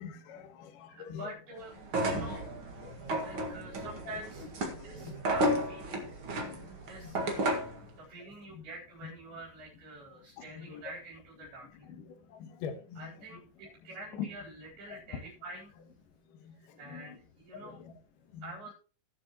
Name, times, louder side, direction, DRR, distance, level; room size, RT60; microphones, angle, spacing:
voice 1, 0.0-1.4 2.1-2.3 2.8-3.6 3.8-5.6 5.9-6.1 6.6-6.7 7.0-7.4 8.2-8.6 9.0-9.1 10.4-10.8 11.6-13.4 14.1-14.3 14.9-15.2 16.4-17.2 17.5-18.0 18.3-18.6, left 7 dB, 65° left, 6 dB, 2.4 m, -45 dB
voice 2, 0.9-1.7 2.0-2.4 3.2-4.4 4.8-6.1 6.9-7.7 8.0-11.9 13.0-15.7 16.5-17.8 18.4-18.7, right 2 dB, 65° right, -5 dB, 5.6 m, -47 dB
sound 1, 1.8-7.8, right 1 dB, 45° right, 1.8 m, -33 dB
18.0 x 7.4 x 3.0 m, 0.35 s
omnidirectional pair, 4.7 m